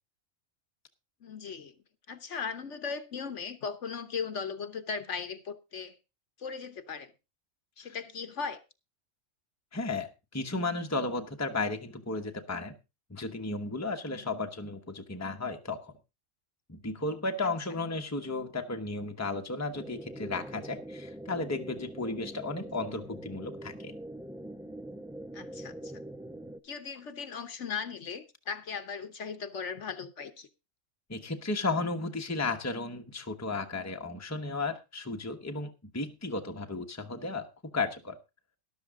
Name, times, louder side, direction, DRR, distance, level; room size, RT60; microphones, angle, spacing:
voice 1, 1.2-1.7 2.1-6.0 6.4-7.1 7.8-8.6 14.1-14.3 25.3-25.9 26.6-30.5, left 5 dB, 65° left, 1.3 m, -38 dB
voice 2, 9.7-12.8 13.1-15.9 16.7-23.9 31.1-37.5 37.7-38.2, left 3 dB, 15° left, 1.1 m, -34 dB
sound 1, 19.7-26.6, right 1 dB, 5° right, 0.4 m, -43 dB
13.0 x 11.5 x 3.7 m
omnidirectional pair, 1.4 m